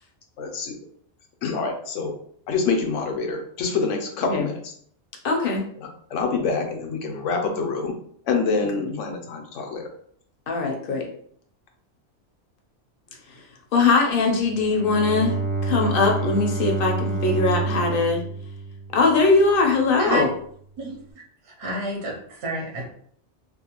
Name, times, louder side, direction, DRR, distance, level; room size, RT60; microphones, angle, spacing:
voice 1, 0.4-0.7 1.4-2.1 2.5-4.7 5.8-7.9 8.3-9.9, left 4 dB, 90° left, 3 dB, 0.9 m, -26 dB
voice 2, 5.2-5.6 8.8-9.1 10.5-11.1 13.3-13.4 13.7-15.4 15.6-18.2 18.9-20.3, left 3 dB, 60° left, 2 dB, 0.7 m, -21 dB
Bowed string instrument, 14.4-19.6, right 3 dB, 45° right, 0.5 m, -28 dB
voice 3, 21.4-22.9, right 2 dB, 65° right, -1 dB, 0.9 m, -30 dB
2.5 x 2.2 x 2.8 m, 0.62 s
omnidirectional pair, 1.2 m